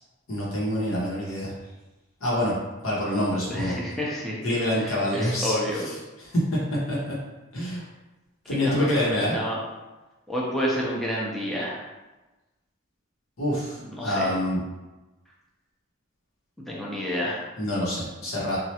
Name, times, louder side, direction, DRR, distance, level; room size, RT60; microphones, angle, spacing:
voice 1, 0.3-1.5 2.2-2.5 2.8-3.7 4.4-5.9 6.3-6.6 6.9-7.2 7.5-7.8 8.5-9.4 13.4-14.6 17.6-18.6, left 1 dB, 80° left, -5 dB, 1.0 m, -26 dB
voice 2, 3.5-4.4 4.8-5.9 8.6-9.6 10.3-11.8 13.8-14.3 16.6-17.5, equal, ahead, -6 dB, 0.5 m, -29 dB
3.2 x 2.3 x 2.8 m, 1.1 s
head